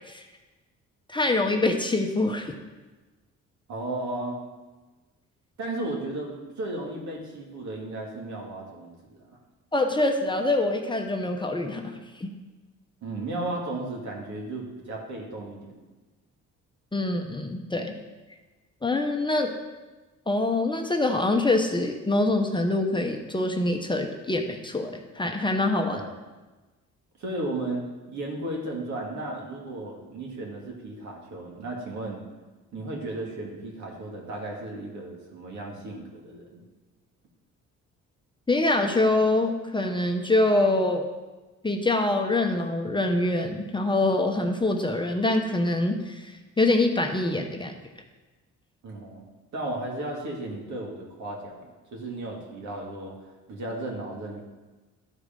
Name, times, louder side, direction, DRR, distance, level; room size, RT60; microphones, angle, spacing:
voice 1, 1.1-2.5 9.7-12.3 16.9-17.9 18.8-19.5 20.3-26.0 38.5-41.0 41.6-47.7, left 2 dB, 15° left, 3 dB, 0.9 m, -25 dB
voice 2, 3.7-4.4 5.6-8.9 9.3-9.4 13.0-15.8 25.9-26.1 27.2-32.2 32.7-36.6 48.8-49.2 49.5-54.4, right 2 dB, 70° right, -1 dB, 2.5 m, -34 dB
12.5 x 4.9 x 5.3 m, 1.2 s
cardioid pair, 90°, 30 cm